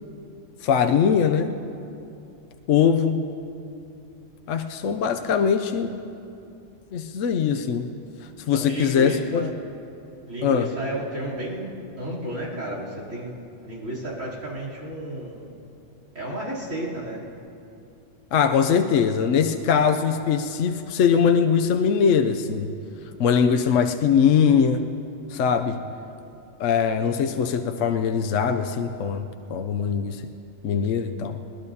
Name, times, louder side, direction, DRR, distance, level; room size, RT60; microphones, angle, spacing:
voice 1, 0.6-1.5 2.7-3.2 4.5-6.0 6.9-7.9 8.5-9.5 10.4-10.7 18.3-22.7 23.2-24.9 25.3-25.8 26.6-30.2 30.6-31.4, left 7 dB, 70° left, 6 dB, 1.0 m, -21 dB
voice 2, 8.5-9.5 10.3-13.3 13.6-15.5 16.1-17.2, right 1 dB, 70° right, -5 dB, 3.7 m, -32 dB
20.5 x 20.0 x 2.8 m, 2.7 s
omnidirectional pair, 1.4 m